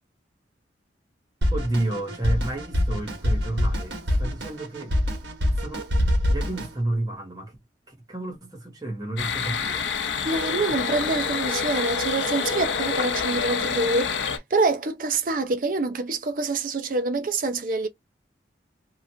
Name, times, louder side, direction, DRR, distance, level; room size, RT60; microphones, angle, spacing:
Drum kit, 1.4-6.7, left 1 dB, 75° right, 1.3 m, -25 dB
voice 1, 1.5-5.0 5.6-6.0 6.3-7.6 7.9-9.9, right 2 dB, 20° right, 1.1 m, -31 dB
sound 1, 9.2-14.4, left 6 dB, 80° left, 0.6 m, -27 dB
voice 2, 10.2-17.9, right 3 dB, 50° right, 0.6 m, -26 dB
2.8 x 2.5 x 2.7 m
head